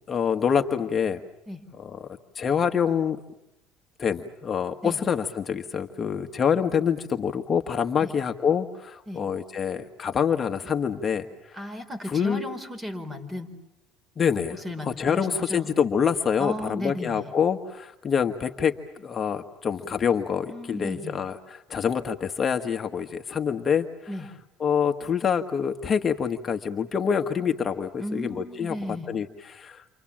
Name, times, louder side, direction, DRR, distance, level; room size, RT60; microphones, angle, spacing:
voice 1, 0.1-1.2 1.8-2.1 2.3-3.2 4.0-11.7 12.1-12.4 14.2-14.6 14.8-23.9 24.6-28.8 29.1-29.8, left 7 dB, 30° left, 5 dB, 1.4 m, -26 dB
voice 2, 11.5-13.5 14.5-15.7 16.4-17.3 20.5-21.2 24.1-24.3 28.0-29.1, left 1 dB, 15° right, 9 dB, 4.6 m, -35 dB
29.5 x 27.0 x 7.5 m, 0.87 s
supercardioid pair, 110°, 0 cm